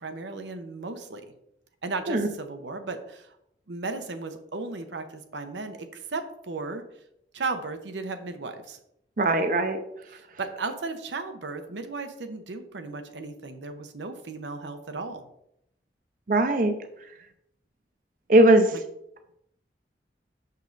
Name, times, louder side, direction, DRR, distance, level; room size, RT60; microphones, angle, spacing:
voice 1, 0.0-1.2 1.8-3.3 3.7-6.8 7.3-8.8 10.1-15.3, right 3 dB, 85° right, 7 dB, 0.8 m, -35 dB
voice 2, 9.2-9.8 16.3-16.7 18.3-18.8, right 1 dB, 50° right, 7 dB, 0.6 m, -19 dB
6.3 x 5.4 x 3.9 m, 0.77 s
head